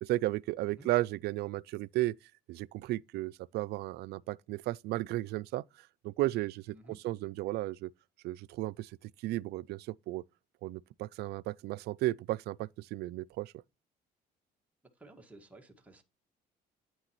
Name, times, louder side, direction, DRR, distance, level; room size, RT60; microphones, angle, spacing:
voice 1, 0.0-2.1 2.5-7.9 8.2-10.2 10.6-13.5, right 17 dB, 75° right, 0.4 m, -34 dB
voice 2, 15.0-16.0, right 1 dB, 10° right, 1.8 m, -54 dB
8.9 x 7.9 x 3.0 m
cardioid pair, 110°, 17 cm